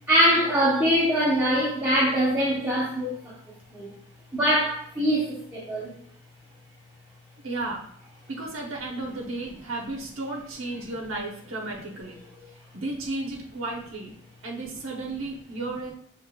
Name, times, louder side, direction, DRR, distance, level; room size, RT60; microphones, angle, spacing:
voice 1, 0.1-3.9 4.3-5.9, equal, 10° right, -8 dB, 0.9 m, -23 dB
voice 2, 7.4-7.9 8.3-12.2 12.7-14.2 14.4-15.9, right 2 dB, 75° right, -1 dB, 0.9 m, -33 dB
6.6 x 3.1 x 2.3 m, 0.62 s
head